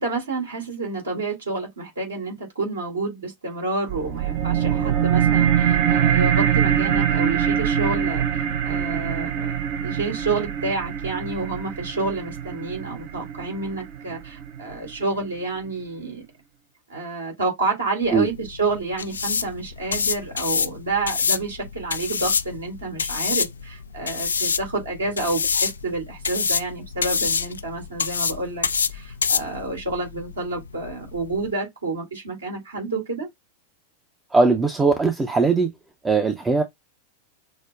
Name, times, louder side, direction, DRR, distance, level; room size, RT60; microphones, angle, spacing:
voice 1, 0.0-9.5 9.8-16.3 16.9-28.6 28.9-33.3, right 3 dB, 70° right, 2.3 m, -29 dB
sound 1, 3.9-14.9, right 9 dB, 45° right, 0.8 m, -23 dB
sound 2, 18.0-31.5, left 5 dB, 70° left, 0.3 m, -27 dB
voice 2, 34.3-35.7 36.0-36.6, right 4 dB, 15° right, 0.6 m, -19 dB
6.1 x 2.1 x 2.4 m
figure-of-eight pair, 90°, 0 cm